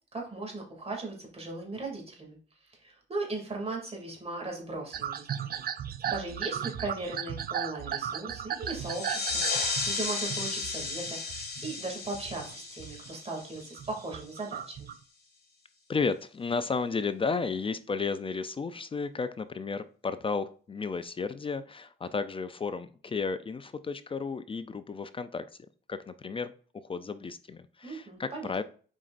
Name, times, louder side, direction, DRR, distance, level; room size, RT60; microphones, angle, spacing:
voice 1, 0.1-2.4 2.6-5.5 6.1-9.4 9.8-14.9 27.8-28.5, right 2 dB, 30° right, 0 dB, 2.6 m, -38 dB
sound 1, 4.9-11.7 12.1-13.1 13.5-14.9, right 9 dB, 50° right, 0.5 m, -36 dB
sound 2, 8.7-14.0, left 4 dB, 55° left, 1.8 m, -34 dB
voice 2, 15.9-25.5 25.9-28.6, left 4 dB, 25° left, 13 dB, 0.4 m, -33 dB
7.4 x 5.0 x 2.6 m, 0.41 s
cardioid pair, 90°, 20 cm